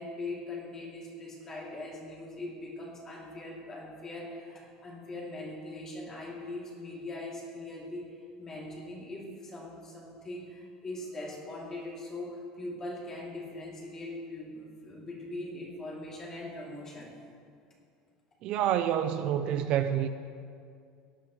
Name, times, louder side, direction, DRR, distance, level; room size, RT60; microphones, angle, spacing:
voice 1, 0.0-17.2, left 2 dB, 25° left, 2.9 m, -41 dB
voice 2, 18.4-20.1, right 10 dB, 50° right, 0.5 m, -28 dB
17.5 x 10.5 x 3.2 m
cardioid pair, 155°, 2 cm